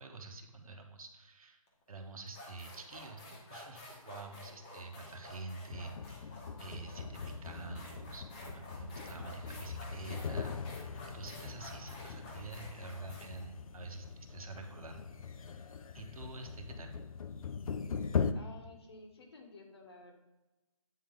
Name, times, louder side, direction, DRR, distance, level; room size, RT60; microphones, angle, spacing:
voice 1, 0.0-1.6 1.9-10.9 11.1-15.0 15.9-17.0, right 3 dB, 75° right, 5 dB, 1.2 m, -47 dB
sound 1, 1.7-1.8 2.3-14.6, left 2 dB, 15° left, 0.7 m, -51 dB
sound 2, 5.7-18.3, left 6 dB, 70° left, 0.5 m, -41 dB
voice 2, 18.3-20.1, left 3 dB, 45° left, 3 dB, 1.2 m, -53 dB
8.7 x 3.9 x 3.7 m, 1.1 s
hypercardioid pair, 170°, 18 cm